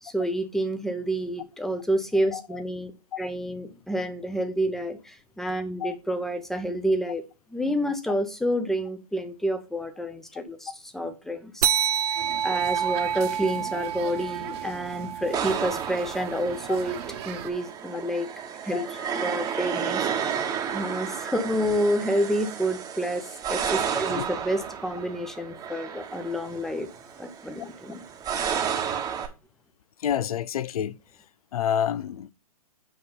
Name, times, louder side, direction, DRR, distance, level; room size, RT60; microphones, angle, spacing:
voice 1, 0.0-2.9 3.2-7.2 7.5-11.7 12.4-17.0 17.2-18.3 18.6-26.9 27.2-28.0, equal, ahead, 0.8 m, -29 dB
voice 2, 2.3-2.6 5.8-5.9 16.7-16.8 18.7-18.9 24.1-24.2 27.6-27.7 30.0-31.0 31.5-32.3, left 9 dB, 65° left, 0.5 m, -28 dB
sound 1, 11.6-16.5, right 9 dB, 75° right, 0.5 m, -29 dB
sound 2, 12.1-17.5, right 10 dB, 40° right, 1.2 m, -40 dB
sound 3, 15.3-29.3, right 8 dB, 20° right, 1.2 m, -32 dB
7.7 x 5.5 x 4.0 m
hypercardioid pair, 125°, 20 cm